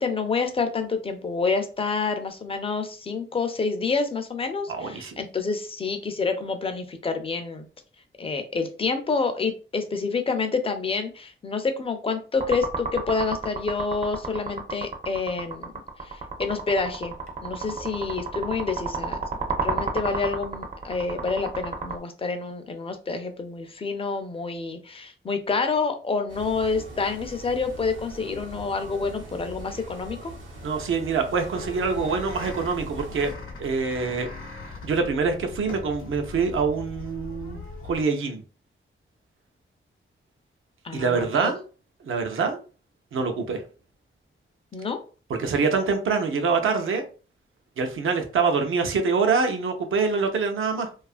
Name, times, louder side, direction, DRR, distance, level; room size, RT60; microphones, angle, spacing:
voice 1, 0.0-7.7 8.2-15.7 16.0-17.1 17.4-19.2 19.6-30.3 40.8-41.5 44.7-45.0, left 4 dB, 30° left, 7 dB, 0.4 m, -28 dB
voice 2, 4.7-5.2 30.6-33.3 33.6-34.3 34.8-38.4 40.9-41.6 42.0-42.6 43.1-43.6 45.3-47.0 47.8-50.9, right 5 dB, 90° right, 5 dB, 0.6 m, -25 dB
sound 1, 12.4-21.9, right 4 dB, 35° right, 0.5 m, -31 dB
sound 2, 26.3-33.3, right 2 dB, 70° right, 0.9 m, -41 dB
sound 3, 31.5-38.0, left 3 dB, 90° left, 0.7 m, -40 dB
2.7 x 2.3 x 2.4 m, 0.37 s
wide cardioid pair, 140°, 21 cm